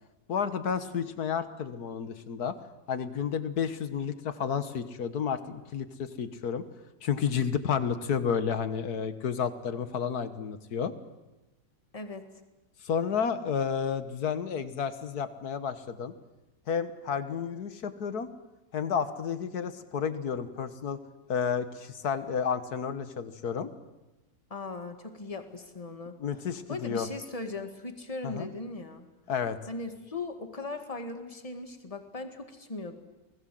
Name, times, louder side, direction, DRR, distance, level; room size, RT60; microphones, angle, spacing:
voice 1, 0.3-2.6 2.9-6.6 7.0-10.9 12.8-16.1 16.7-18.3 18.7-21.0 21.3-23.7 26.2-27.1 28.2-28.5 29.3-29.6, left 7 dB, 60° left, 12 dB, 1.8 m, -31 dB
voice 2, 11.9-12.3 24.5-26.2 26.7-29.1 29.7-33.0, left 3 dB, 20° left, 7 dB, 2.0 m, -38 dB
28.5 x 20.0 x 7.8 m, 1.0 s
omnidirectional pair, 1.9 m